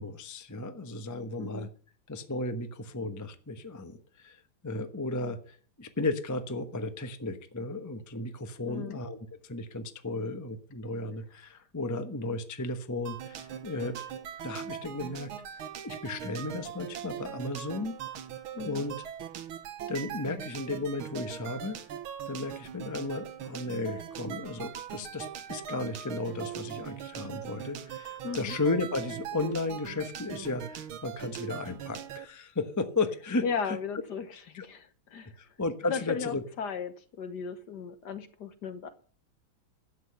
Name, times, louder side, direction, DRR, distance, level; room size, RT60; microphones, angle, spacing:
voice 1, 0.0-1.7 2.1-9.2 9.4-15.3 15.8-18.0 18.6-18.9 19.9-21.8 22.3-33.8 34.5-34.6 35.4-36.4, left 2 dB, 15° left, 7 dB, 0.7 m, -34 dB
voice 2, 1.4-1.7 8.6-9.0 11.5-11.6 18.5-18.9 28.2-28.6 33.4-35.3 35.9-38.9, left 6 dB, 60° left, 9 dB, 1.6 m, -36 dB
sound 1, 13.0-32.2, right 9 dB, 85° right, 1.9 m, -41 dB
12.0 x 8.4 x 6.7 m, 0.43 s
omnidirectional pair, 2.2 m